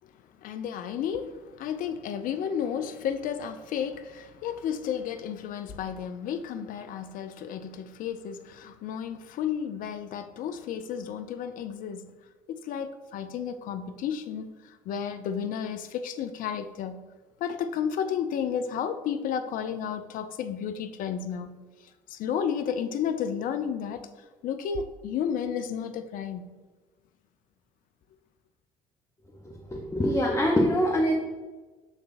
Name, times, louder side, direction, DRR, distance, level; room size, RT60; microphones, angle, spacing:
voice 1, 0.4-12.1 12.5-17.0 17.4-21.5 22.1-24.1 24.4-26.5, left 8 dB, 50° left, 0.4 m, -32 dB
voice 2, 29.7-31.1, equal, 15° left, 0.7 m, -24 dB
5.9 x 3.3 x 2.5 m
hypercardioid pair, 55°, 18 cm